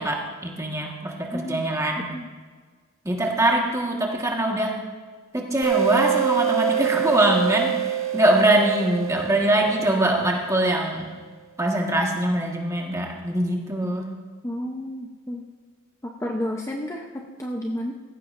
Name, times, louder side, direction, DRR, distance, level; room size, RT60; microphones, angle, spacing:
voice 1, 0.0-2.1 3.0-4.8 5.3-11.1 11.6-14.1, right 1 dB, 15° right, 0 dB, 1.5 m, -23 dB
voice 2, 1.3-1.6 2.1-2.3 14.4-15.4 16.0-17.9, left 1 dB, 15° left, 1 dB, 0.7 m, -31 dB
sound 1, 5.6-10.9, right 11 dB, 80° right, 1.7 m, -26 dB
17.0 x 15.0 x 2.6 m, 1.5 s
head